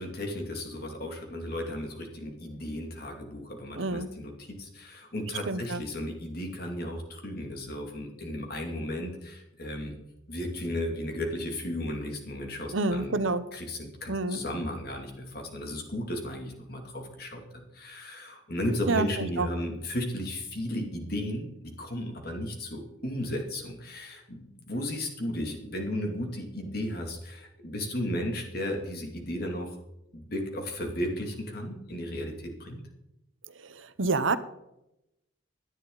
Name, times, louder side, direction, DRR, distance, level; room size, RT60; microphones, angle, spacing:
voice 1, 0.0-9.9 10.3-13.2 13.5-17.4 17.7-29.7 30.1-32.8, left 1 dB, 50° left, 2 dB, 2.7 m, -34 dB
voice 2, 3.8-4.1 5.5-5.8 12.7-13.5 14.1-14.4 18.9-19.5 33.7-34.4, right 3 dB, 75° right, 13 dB, 0.9 m, -28 dB
17.5 x 11.0 x 4.0 m, 0.87 s
head